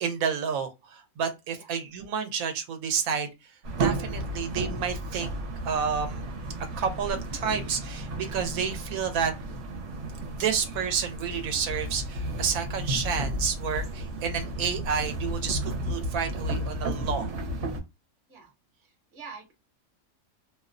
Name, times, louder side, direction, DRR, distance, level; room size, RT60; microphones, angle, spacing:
voice 1, 0.0-3.3 3.8-5.3 5.6-6.3 6.8-9.3 10.2-17.3, right 6 dB, 90° right, 1.0 m, -30 dB
sound 1, 3.6-17.8, right 1 dB, 65° right, 1.0 m, -33 dB
voice 2, 18.3-19.5, right 5 dB, 40° right, 0.9 m, -47 dB
2.5 x 2.0 x 2.4 m
omnidirectional pair, 1.4 m